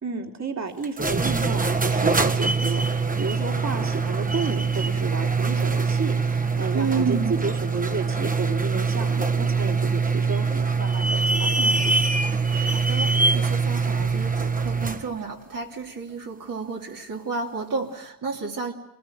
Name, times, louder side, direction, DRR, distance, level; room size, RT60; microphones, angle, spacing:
voice 1, 0.0-11.9, right 4 dB, 50° right, 3 dB, 3.1 m, -32 dB
sound 1, 0.8-15.1, right 4 dB, 25° right, 1.6 m, -23 dB
voice 2, 6.7-7.4 12.6-18.7, right 5 dB, 70° right, -2 dB, 3.0 m, -31 dB
25.5 x 20.0 x 9.4 m, 0.78 s
cardioid pair, 85°, 34 cm